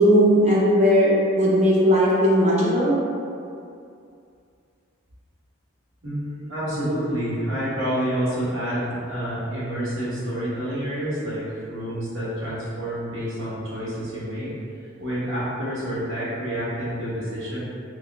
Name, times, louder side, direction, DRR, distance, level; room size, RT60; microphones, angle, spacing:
voice 1, 0.0-2.9, equal, 35° right, -6 dB, 0.6 m, -17 dB
voice 2, 6.0-14.5 15.0-17.6, equal, 85° right, -9 dB, 1.1 m, -28 dB
4.7 x 2.2 x 2.3 m, 2.5 s
head